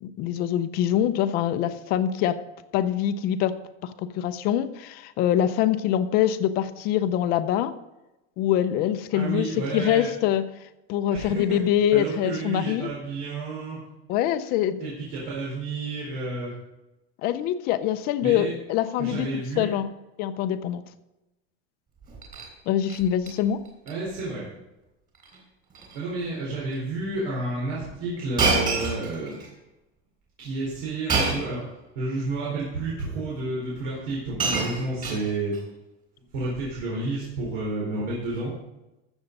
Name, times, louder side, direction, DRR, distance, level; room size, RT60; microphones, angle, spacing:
voice 1, 0.0-2.4 2.7-3.6 3.8-7.7 8.4-10.4 10.9-12.9 14.1-14.9 17.2-19.9 20.2-20.8 22.7-23.6, left 10 dB, 25° left, 11 dB, 0.5 m, -24 dB
voice 2, 9.1-10.1 11.1-11.6 11.9-13.8 14.8-16.5 18.2-18.5 19.0-19.7 23.9-24.4 25.9-29.4 30.4-31.6 31.9-35.6 36.3-38.5, right 2 dB, 85° right, -5 dB, 4.4 m, -30 dB
Shatter, 22.0-22.5 22.9-23.3 23.7-23.9 24.2-24.3 25.2-25.4 25.7-26.0 26.7-26.8 28.4-29.5 31.1-31.6 32.6-32.7 33.7-33.8 34.1-35.6 36.6-36.8, right 4 dB, 20° right, 3.4 m, -27 dB
14.5 x 7.1 x 5.3 m, 0.97 s
supercardioid pair, 180°, 36 cm